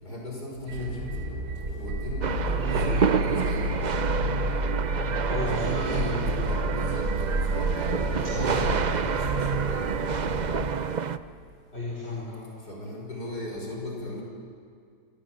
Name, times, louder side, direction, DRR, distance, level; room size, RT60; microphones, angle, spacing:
voice 1, 0.0-1.2 1.8-3.7 5.5-6.1 6.4-8.8 9.3-10.2 12.7-14.2, left 1 dB, 70° left, 0 dB, 6.2 m, -37 dB
sound 1, 0.7-10.7, right 1 dB, 85° right, 4.5 m, -30 dB
sound 2, 2.2-11.2, right 6 dB, 50° right, 0.5 m, -28 dB
voice 2, 2.6-3.0 5.3-6.4 8.2-8.5 11.7-12.5, left 1 dB, 40° left, -4 dB, 4.5 m, -34 dB
29.0 x 25.5 x 7.6 m, 2.3 s
omnidirectional pair, 1.7 m